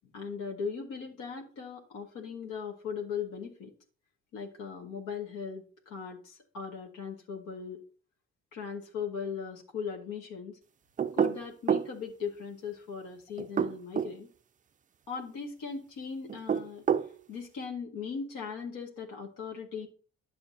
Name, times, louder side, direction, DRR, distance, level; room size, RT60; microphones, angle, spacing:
voice 1, 0.1-3.7 4.3-7.8 8.5-10.6 11.1-14.3 15.1-16.8 17.3-19.9, left 6 dB, 90° left, 0 dB, 1.7 m, -39 dB
Knocking On Door, 11.0-11.9 13.4-14.2 16.3-17.1, right 7 dB, 25° right, 0.3 m, -28 dB
10.5 x 7.1 x 2.7 m, 0.38 s
cardioid pair, 90°, 30 cm